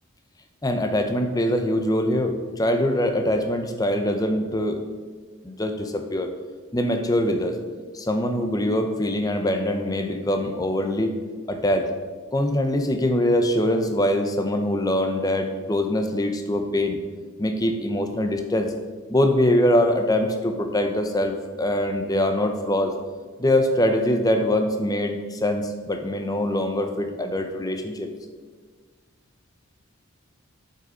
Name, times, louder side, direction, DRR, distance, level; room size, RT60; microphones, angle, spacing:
voice 1, 0.6-4.8 5.4-6.3 6.7-7.6 7.9-11.2 11.5-11.9 12.3-17.0 17.4-18.7 19.1-22.9 23.4-28.1, left 1 dB, 15° left, 6 dB, 0.6 m, -23 dB
7.9 x 5.5 x 5.0 m, 1.5 s
head